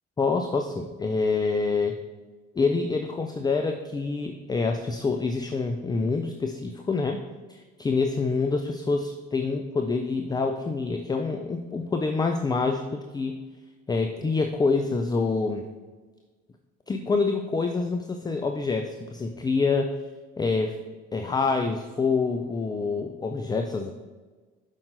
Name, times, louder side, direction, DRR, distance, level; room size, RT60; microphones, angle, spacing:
voice 1, 0.2-2.0 2.6-7.2 7.5-13.4 13.9-15.6 16.9-20.0 20.4-20.8 21.1-23.9, left 4 dB, 15° left, 5 dB, 0.5 m, -26 dB
11.0 x 5.4 x 2.6 m, 1.3 s
figure-of-eight pair, 50°, 32 cm